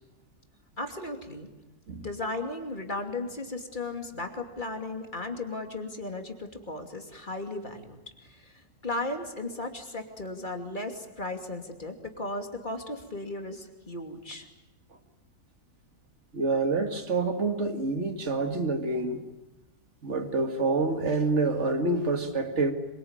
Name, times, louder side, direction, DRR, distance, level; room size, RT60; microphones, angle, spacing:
voice 1, 0.8-1.5 2.0-14.5, left 2 dB, 30° left, 3.0 m, -36 dB
voice 2, 16.3-19.3 20.0-22.7, right 3 dB, 50° right, 2.4 m, -27 dB
26.0 x 24.0 x 9.0 m
omnidirectional pair, 1.6 m